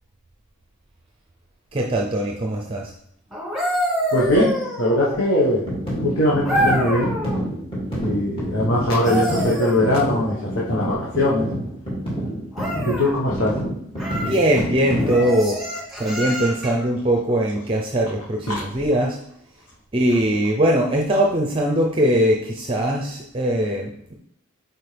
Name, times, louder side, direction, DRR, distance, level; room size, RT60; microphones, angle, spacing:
voice 1, 1.7-2.9 14.3-15.6 16.0-19.2 19.9-24.2, right 1 dB, 25° right, 1 dB, 0.6 m, -21 dB
sound 1, 3.3-5.3 6.4-7.4 8.8-10.4 12.5-13.1 14.0-14.4 15.1-16.9 18.7-18.9, equal, ahead, 2.1 m, -27 dB
voice 2, 4.1-5.6 6.0-7.1 8.0-11.5 12.8-13.5, left 1 dB, 70° left, -5 dB, 1.4 m, -21 dB
sound 2, 5.7-15.3, equal, 25° left, 2.5 m, -28 dB
8.8 x 4.4 x 3.4 m, 0.71 s
head